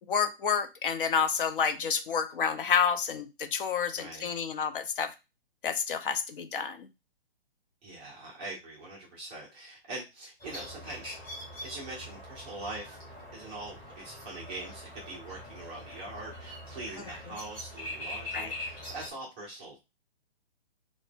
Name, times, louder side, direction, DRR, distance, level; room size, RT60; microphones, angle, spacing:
voice 1, 0.1-5.1 5.6-6.9 18.3-18.5, left 7 dB, 60° left, 10 dB, 0.6 m, -29 dB
voice 2, 3.9-4.3 7.8-11.1 11.6-13.0 13.3-19.8, right 2 dB, 10° right, -4 dB, 0.4 m, -43 dB
sound 1, 10.4-19.1, left 1 dB, 15° left, 1.2 m, -43 dB
3.7 x 2.1 x 3.3 m, 0.25 s
hypercardioid pair, 145°, 30 cm